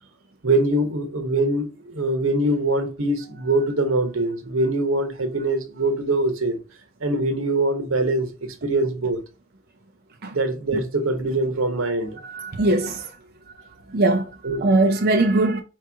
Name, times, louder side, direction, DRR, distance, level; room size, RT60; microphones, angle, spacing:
voice 1, 0.4-6.6 7.0-9.2 10.3-12.2 14.4-14.7, right 2 dB, 85° right, 1.1 m, -23 dB
voice 2, 12.2-13.1 13.9-14.3 14.6-15.6, right 2 dB, 50° right, 0.6 m, -20 dB
4.7 x 3.0 x 3.5 m
head